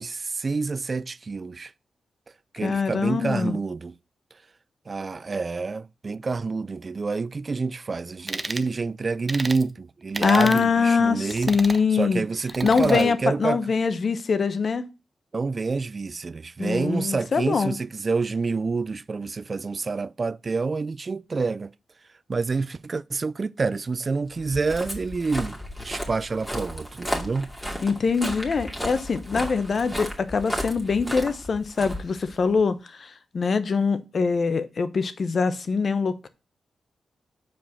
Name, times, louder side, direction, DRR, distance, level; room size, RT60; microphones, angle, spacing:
voice 1, 0.0-1.7 2.5-3.9 4.9-11.6 11.9-13.6 15.3-21.7 22.3-27.5, right 4 dB, 45° right, 0.4 m, -28 dB
voice 2, 2.6-3.6 10.2-12.2 12.6-14.9 16.6-17.7 27.8-36.3, left 5 dB, 60° left, 0.8 m, -23 dB
sound 1, 8.3-8.7 9.3-9.6 10.1-10.6 11.3-11.8 12.5-13.1, right 2 dB, 30° right, 0.8 m, -32 dB
Walk footsteps, 24.3-32.6, equal, 5° left, 2.4 m, -34 dB
6.0 x 4.7 x 6.2 m
supercardioid pair, 50°, 0 cm